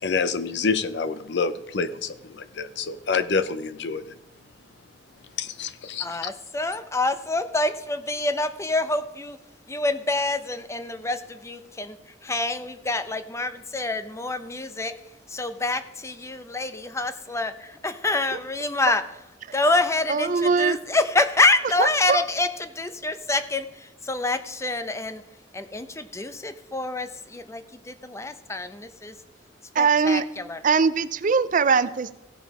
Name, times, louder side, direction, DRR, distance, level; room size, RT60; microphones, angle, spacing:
voice 1, 0.0-4.1 5.4-6.3, left 5 dB, 70° left, 13 dB, 0.7 m, -27 dB
voice 2, 6.0-9.4 9.7-14.9 15.3-19.0 19.5-25.2 25.5-29.1 29.8-30.6, left 2 dB, 15° left, 10 dB, 0.7 m, -27 dB
voice 3, 20.1-20.8 21.8-22.2 29.8-30.2 30.6-32.1, right 5 dB, 45° right, 14 dB, 0.5 m, -21 dB
16.0 x 5.4 x 4.8 m, 0.93 s
head